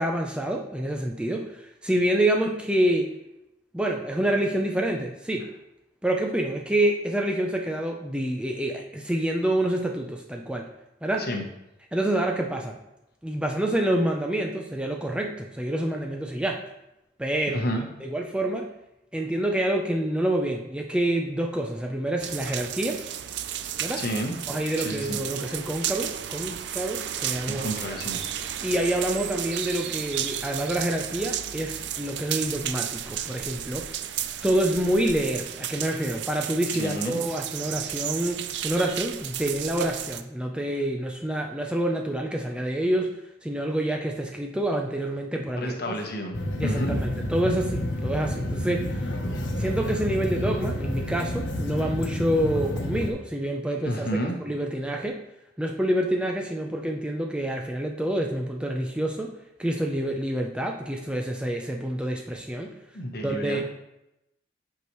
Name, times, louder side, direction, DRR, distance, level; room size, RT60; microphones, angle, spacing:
voice 1, 0.0-3.1 3.7-5.5 6.0-10.7 11.0-11.3 11.9-12.8 13.2-16.6 17.2-17.6 18.0-18.7 19.1-23.0 23.8-24.0 24.5-28.0 28.4-33.9 34.4-43.1 43.4-46.0 46.6-48.9 49.6-54.1 54.4-55.2 55.6-59.3 59.6-62.7 63.2-63.6, right 1 dB, 5° right, 1 dB, 0.5 m, -27 dB
voice 2, 17.5-17.8 24.0-24.3 24.8-25.2 27.5-28.2 36.8-37.2 45.6-47.0 53.8-54.3 62.9-63.6, equal, 55° left, 3 dB, 1.0 m, -30 dB
sound 1, 22.2-40.2, right 10 dB, 65° right, 0.4 m, -33 dB
sound 2, 46.3-53.1, left 1 dB, 80° left, 0.9 m, -29 dB
8.1 x 4.8 x 3.1 m, 0.88 s
head